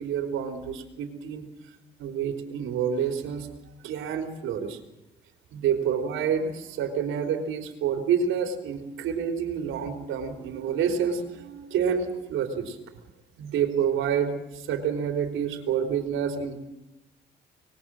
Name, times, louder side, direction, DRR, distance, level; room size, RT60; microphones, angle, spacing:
voice 1, 0.0-1.5 2.0-3.5 3.8-4.8 5.5-12.8 13.4-16.6, right 7 dB, 90° right, 5 dB, 3.8 m, -28 dB
25.0 x 21.0 x 7.8 m, 0.96 s
cardioid pair, 90°, 20 cm